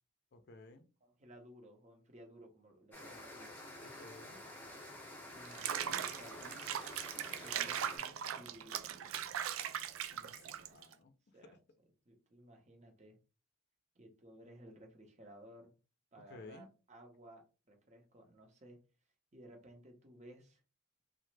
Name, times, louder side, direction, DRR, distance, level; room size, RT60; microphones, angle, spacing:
voice 1, 0.3-0.8 3.8-4.4 10.1-11.1 16.3-16.7, left 3 dB, 50° left, 0.4 m, -55 dB
voice 2, 1.0-3.6 5.3-6.7 7.3-9.3 11.3-11.6 12.1-13.2 14.0-15.8 16.1-18.8 19.3-20.6, right 1 dB, 35° right, 0.7 m, -57 dB
sound 1, 2.9-8.0, left 1 dB, 10° left, 0.6 m, -50 dB
Water / Bathtub (filling or washing), 5.4-10.9, right 9 dB, 75° right, 0.3 m, -40 dB
3.2 x 2.0 x 3.2 m
head